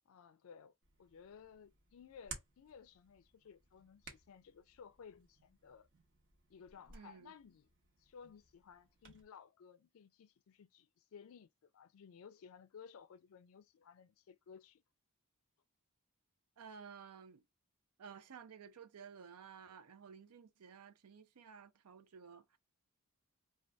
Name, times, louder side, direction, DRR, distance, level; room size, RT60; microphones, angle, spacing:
voice 1, 0.1-0.7 1.0-5.9 6.5-7.7 8.0-14.8, left 6 dB, 65° left, 0.4 m, -58 dB
Hands, 0.8-9.2, right 4 dB, 55° right, 1.0 m, -58 dB
voice 2, 6.9-7.3 16.6-17.4 18.0-22.6, right 6 dB, 90° right, 0.5 m, -54 dB
2.6 x 2.3 x 3.3 m
head